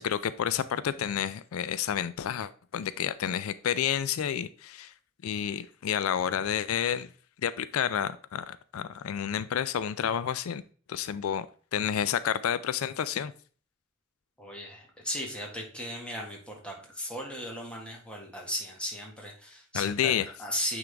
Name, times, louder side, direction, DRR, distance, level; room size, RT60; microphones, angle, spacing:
voice 1, 0.0-4.9 5.2-7.1 7.4-10.6 10.9-11.5 11.7-13.3 19.7-20.2, left 9 dB, 90° left, 15 dB, 0.4 m, -30 dB
voice 2, 14.4-20.1 20.4-20.8, equal, 5° left, -1 dB, 1.7 m, -36 dB
8.9 x 3.8 x 3.4 m, 0.42 s
head